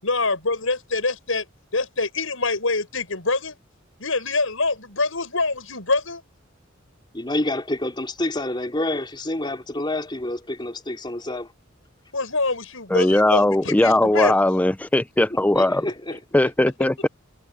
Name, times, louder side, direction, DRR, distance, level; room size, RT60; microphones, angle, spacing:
voice 1, 0.0-3.6 4.0-6.2 12.1-14.4, left 3 dB, 85° left, 6.2 m, -25 dB
voice 2, 7.1-11.5 15.3-16.2, left 1 dB, 25° left, 3.9 m, -28 dB
voice 3, 12.9-15.8 16.3-17.1, left 1 dB, 10° left, 0.4 m, -19 dB
head